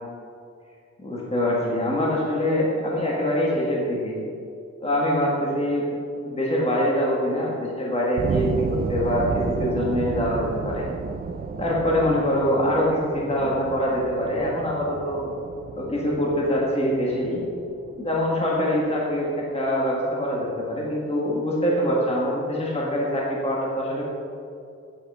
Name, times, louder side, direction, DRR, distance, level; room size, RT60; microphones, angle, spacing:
voice 1, 1.0-4.2 4.8-5.9 6.2-10.9 11.6-15.2 15.7-17.4 18.0-24.1, equal, 20° left, -4 dB, 1.7 m, -24 dB
sound 1, 8.2-18.9, right 5 dB, 35° right, 0.4 m, -32 dB
8.4 x 8.3 x 5.5 m, 2.4 s
wide cardioid pair, 150°, 29 cm